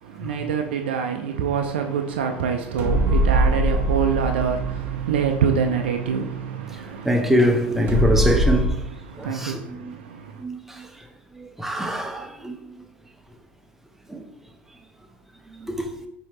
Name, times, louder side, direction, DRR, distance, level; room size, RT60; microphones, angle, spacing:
voice 1, 0.0-7.3 9.0-10.4, right 6 dB, 65° right, 0.4 m, -26 dB
sound 1, 2.8-8.7, right 1 dB, 30° right, 1.3 m, -24 dB
voice 2, 6.9-8.7 9.2-10.0 10.4-11.1 11.3-12.8 14.1-14.2 15.6-15.9, equal, 5° right, 0.7 m, -24 dB
5.6 x 2.7 x 3.1 m
figure-of-eight pair, 70°, 6 cm